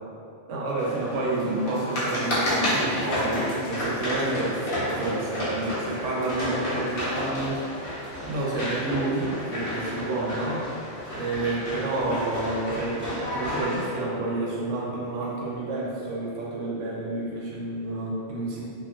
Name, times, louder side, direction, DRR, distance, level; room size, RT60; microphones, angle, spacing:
voice 1, 0.5-7.6 8.2-10.7 11.1-18.6, right 2 dB, 80° right, -5 dB, 1.0 m, -29 dB
sound 1, 0.8-13.9, left 1 dB, 55° left, 0.9 m, -31 dB
2.7 x 2.5 x 2.5 m, 2.6 s
omnidirectional pair, 1.2 m